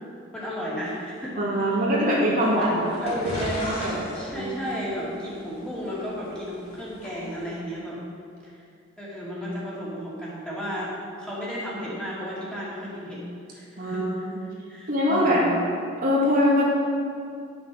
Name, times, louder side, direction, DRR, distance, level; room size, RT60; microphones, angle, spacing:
voice 1, 0.3-1.8 2.3-3.5 4.1-8.0 8.4-8.6 9.0-10.9 11.2-13.2 13.5-15.5, equal, 5° left, -8 dB, 2.8 m, -34 dB
voice 2, 1.4-2.8 3.0-4.0 4.3-4.6 7.4-7.6 13.8-14.4 14.9-15.5 16.0-16.6, equal, 45° right, -6 dB, 2.1 m, -23 dB
sound 1, 2.4-7.1, equal, 30° left, 2.6 m, -36 dB
11.0 x 6.9 x 6.3 m, 2.4 s
head